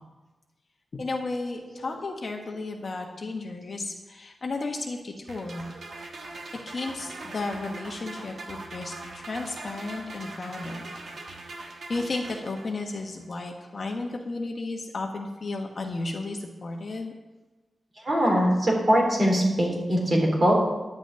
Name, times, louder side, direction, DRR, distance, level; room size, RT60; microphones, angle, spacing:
voice 1, 1.0-5.6 6.7-10.9 11.9-17.1, left 3 dB, 40° left, 2 dB, 1.2 m, -33 dB
voice 2, 1.7-2.0 14.4-14.5 18.0-20.5, equal, 35° right, -2 dB, 3.6 m, -22 dB
sound 1, 5.3-13.0, right 2 dB, 60° right, 1.6 m, -41 dB
10.5 x 6.1 x 8.9 m, 1.1 s
wide cardioid pair, 160°, 0 cm